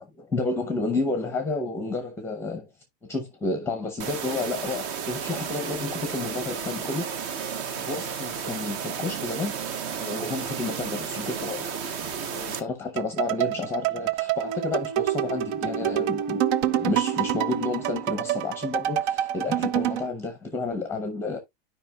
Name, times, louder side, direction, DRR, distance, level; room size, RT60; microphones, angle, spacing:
voice 1, 0.0-2.7 3.1-7.4 7.7-9.5 10.0-11.7 12.2-21.4, left 3 dB, 5° left, 0.7 m, -31 dB
sound 1, 4.0-12.6, right 7 dB, 45° right, 0.9 m, -33 dB
sound 2, 13.0-20.1, right 13 dB, 70° right, 0.6 m, -27 dB
sound 3, 14.4-18.7, right 2 dB, 25° right, 1.3 m, -36 dB
12.0 x 5.0 x 2.3 m
supercardioid pair, 150°, 34 cm